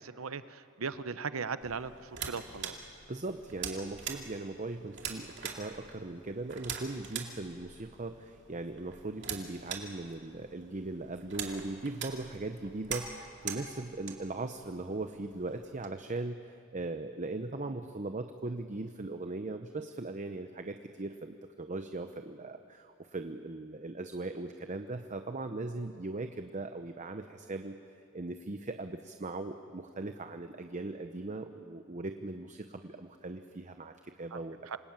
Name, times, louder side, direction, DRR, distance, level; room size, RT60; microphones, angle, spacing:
voice 1, 0.0-2.8 34.3-34.4 34.7-34.8, right 5 dB, 85° right, 13 dB, 0.7 m, -38 dB
sound 1, 1.6-15.9, right 7 dB, 60° right, 2.4 m, -44 dB
voice 2, 2.9-27.8 28.1-34.7, right 2 dB, 35° right, 7 dB, 0.8 m, -39 dB
27.0 x 19.5 x 8.9 m, 2.5 s
head